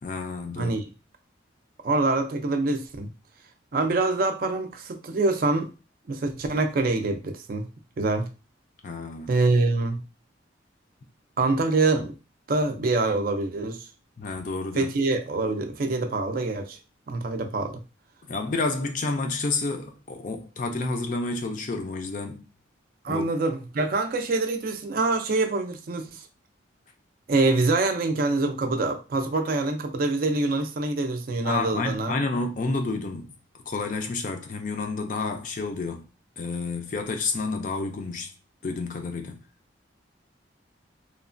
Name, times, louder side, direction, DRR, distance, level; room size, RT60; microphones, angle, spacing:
voice 1, 0.0-0.8 8.8-9.3 14.2-14.9 18.3-22.5 23.1-23.2 31.4-33.3 33.7-36.0 36.4-38.3 38.6-39.4, left 3 dB, 40° left, 0.4 m, -30 dB
voice 2, 1.8-3.1 3.7-5.7 6.1-7.7 8.0-8.3 9.3-10.0 11.4-12.1 12.5-13.9 14.8-16.8 17.1-17.8 23.0-26.3 27.3-32.1, right 3 dB, 45° right, 0.4 m, -25 dB
3.0 x 2.1 x 2.5 m
head